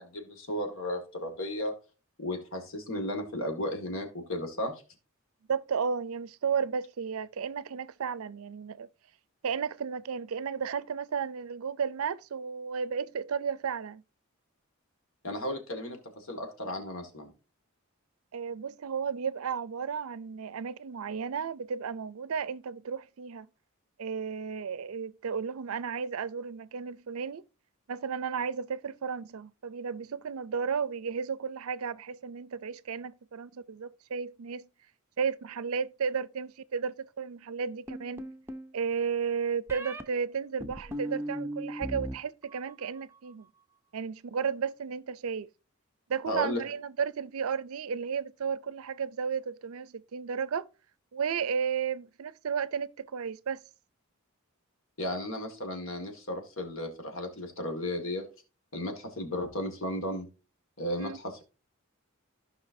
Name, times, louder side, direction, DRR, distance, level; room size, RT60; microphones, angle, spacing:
voice 1, 0.0-1.7 2.2-4.8 15.2-17.3 46.3-46.6 55.0-58.3 58.7-60.3 60.8-61.4, left 1 dB, 65° left, 1.9 m, -34 dB
voice 2, 5.5-8.9 9.4-14.0 18.3-23.5 24.0-27.4 27.9-34.7 35.2-38.3 38.7-43.5 43.9-45.5 46.1-50.7 51.1-53.6 61.0-61.2, right 6 dB, 80° right, 0.5 m, -33 dB
sound 1, 37.9-38.7 39.7-40.0 40.6-42.1 42.4-43.0, right 1 dB, 10° right, 0.5 m, -37 dB
15.0 x 5.4 x 2.7 m
head